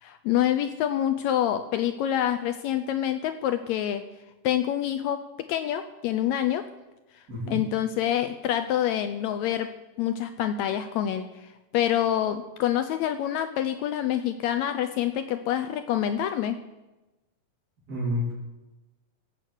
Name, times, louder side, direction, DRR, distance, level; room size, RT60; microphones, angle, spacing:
voice 1, 0.0-4.0 4.4-6.7 7.5-16.6, left 11 dB, 80° left, 9 dB, 1.7 m, -27 dB
voice 2, 7.3-7.6 17.9-18.3, left 1 dB, 30° right, -8 dB, 3.4 m, -29 dB
15.0 x 5.9 x 8.1 m, 1.1 s
omnidirectional pair, 3.6 m